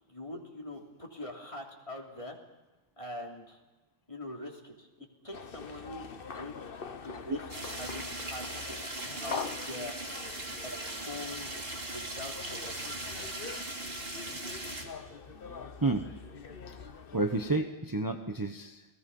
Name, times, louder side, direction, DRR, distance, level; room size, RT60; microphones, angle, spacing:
voice 1, 0.1-2.4 3.0-3.6 4.1-6.1 6.4-6.5 7.0-7.4 7.8-8.6 9.2-10.0 10.6-10.7 11.0-11.5 11.8-13.0, left 1 dB, 30° left, 0 dB, 3.2 m, -43 dB
sound 1, 5.3-17.6, left 5 dB, 55° left, 1.2 m, -44 dB
sound 2, 7.5-14.8, right 2 dB, 55° right, 3.0 m, -39 dB
voice 2, 16.7-18.9, right 2 dB, 20° right, 5 dB, 1.0 m, -31 dB
29.0 x 19.0 x 5.5 m, 1.2 s
omnidirectional pair, 1.2 m